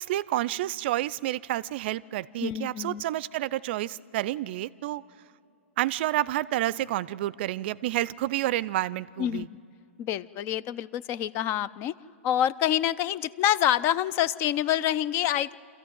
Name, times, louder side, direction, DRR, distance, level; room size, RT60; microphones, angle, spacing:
voice 1, 0.0-5.0 5.8-9.5, right 15 dB, 50° right, 20 dB, 0.4 m, -29 dB
voice 2, 2.4-3.0 9.2-9.5 10.0-11.9 12.2-15.5, left 11 dB, 35° left, 19 dB, 0.5 m, -27 dB
25.0 x 14.0 x 9.2 m, 2.7 s
hypercardioid pair, 125°, 7 cm